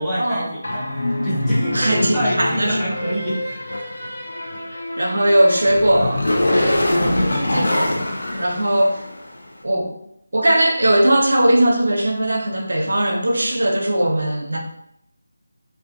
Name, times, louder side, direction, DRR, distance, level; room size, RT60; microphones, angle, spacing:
voice 1, 0.0-3.6, equal, 5° left, -13 dB, 0.6 m, -26 dB
sound 1, 0.6-9.3, left 1 dB, 70° left, 0.6 m, -24 dB
voice 2, 1.7-3.0 4.7-8.1 8.4-9.0 9.6-9.9 10.3-14.6, right 1 dB, 80° right, 1 dB, 0.6 m, -19 dB
2.5 x 2.4 x 2.5 m, 0.74 s
figure-of-eight pair, 170°, 0 cm